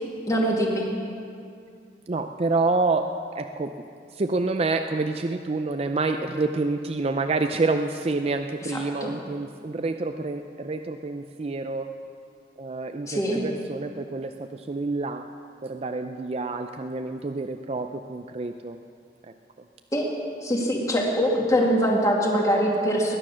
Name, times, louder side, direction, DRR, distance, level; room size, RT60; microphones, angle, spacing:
voice 1, 0.3-0.9 9.0-9.1 13.1-13.4 19.9-20.1 20.4-23.2, equal, 20° left, -1 dB, 2.1 m, -23 dB
voice 2, 2.1-3.7 4.1-11.9 12.6-15.3 15.6-18.8, right 3 dB, 35° right, 6 dB, 0.4 m, -28 dB
20.0 x 9.9 x 6.3 m, 2.4 s
head